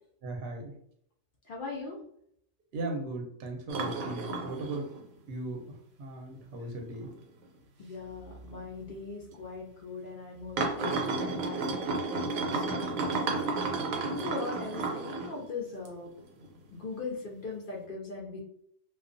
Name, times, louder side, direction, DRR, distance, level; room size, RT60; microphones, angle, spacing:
voice 1, 0.2-0.7 2.7-4.9 5.3-5.6 6.0-7.1, right 2 dB, 55° right, 1 dB, 0.7 m, -37 dB
voice 2, 1.5-2.0 7.8-11.9 12.3-13.5 14.1-16.1 16.7-18.4, left 4 dB, 65° left, -1 dB, 0.5 m, -40 dB
sound 1, 3.7-5.1 5.6-5.7 6.3-6.4 6.9-7.1 7.4-7.5 8.5-8.6 9.3-9.4 10.6-15.4 15.9-16.6 17.0-17.1, right 3 dB, 85° right, 1.0 m, -32 dB
2.2 x 2.2 x 2.5 m, 0.67 s
omnidirectional pair, 1.4 m